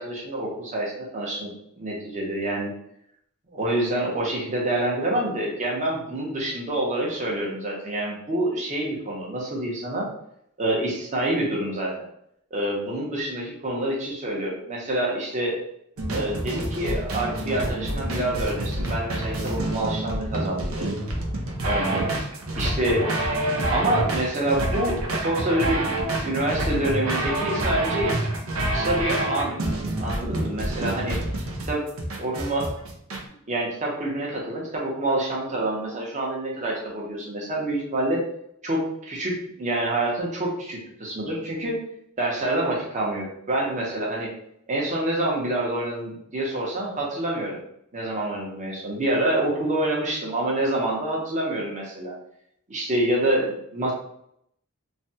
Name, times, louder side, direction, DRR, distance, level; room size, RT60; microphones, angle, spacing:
voice 1, 0.0-1.5 1.8-2.7 3.5-10.1 10.6-12.1 12.5-15.6 16.1-21.0 21.6-22.1 22.6-23.1 23.7-25.9 26.2-28.2 28.7-29.6 30.0-31.2 31.7-31.8 32.2-32.7 33.5-38.2 38.6-41.8 42.2-44.3 44.7-47.6 47.9-52.1 52.7-53.9, right 1 dB, 35° right, -3 dB, 0.8 m, -27 dB
sound 1, 16.0-33.2, right 1 dB, 75° right, 0.6 m, -27 dB
3.2 x 2.2 x 2.7 m, 0.73 s
head